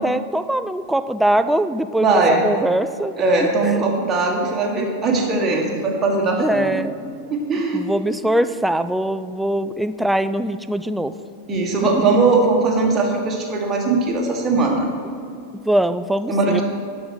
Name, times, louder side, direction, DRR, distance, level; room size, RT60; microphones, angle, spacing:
voice 1, 0.0-3.1 3.6-3.9 6.4-6.9 7.7-11.1 11.9-12.2 15.7-16.6, right 1 dB, 5° right, 12 dB, 0.3 m, -22 dB
voice 2, 2.0-2.5 3.2-6.8 7.3-7.8 11.5-14.9 16.3-16.6, right 3 dB, 20° right, -1 dB, 1.6 m, -19 dB
12.0 x 5.3 x 4.8 m, 2.3 s
figure-of-eight pair, 90°, 0 cm